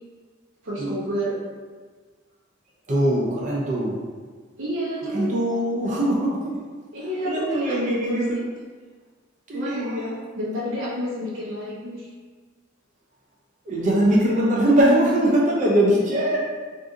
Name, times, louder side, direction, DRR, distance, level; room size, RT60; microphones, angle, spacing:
voice 1, 0.6-1.4 4.6-5.3 6.9-8.2 9.5-9.8 10.4-12.1, equal, 75° right, -10 dB, 0.8 m, -29 dB
voice 2, 2.9-4.0 5.1-6.5 7.2-8.4 9.5-10.2 13.7-16.4, right 1 dB, 40° right, -4 dB, 0.5 m, -21 dB
2.6 x 2.4 x 3.6 m, 1.5 s
head